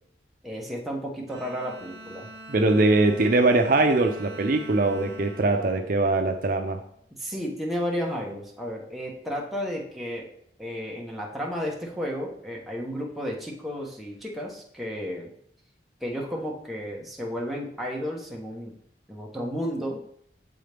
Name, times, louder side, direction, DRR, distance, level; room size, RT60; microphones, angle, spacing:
voice 1, 0.4-2.3 7.2-10.3 10.6-15.3 16.0-18.7 19.1-20.0, equal, ahead, -2 dB, 1.0 m, -32 dB
Bowed string instrument, 1.3-6.8, right 1 dB, 80° right, 1.4 m, -44 dB
voice 2, 2.5-6.8, right 2 dB, 50° right, 4 dB, 0.5 m, -22 dB
7.9 x 3.9 x 3.4 m, 0.66 s
head